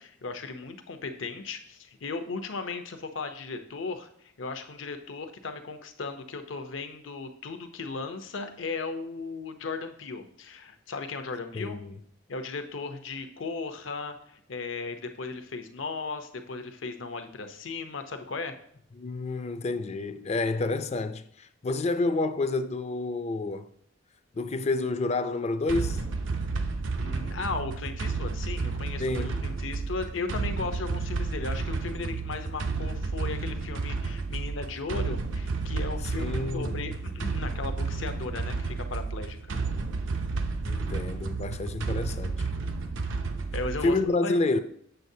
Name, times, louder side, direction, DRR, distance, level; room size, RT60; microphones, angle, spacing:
voice 1, 0.0-4.1 4.4-11.8 12.3-18.5 27.0-39.6 43.5-44.3, left 4 dB, 80° left, 0.7 m, -36 dB
voice 2, 11.5-11.9 19.0-23.7 24.3-26.0 29.0-29.4 36.1-36.8 40.6-42.5 43.8-44.6, left 2 dB, 35° left, 0.4 m, -29 dB
sound 1, 25.7-44.1, right 4 dB, 80° right, 0.6 m, -31 dB
7.8 x 6.5 x 2.7 m
head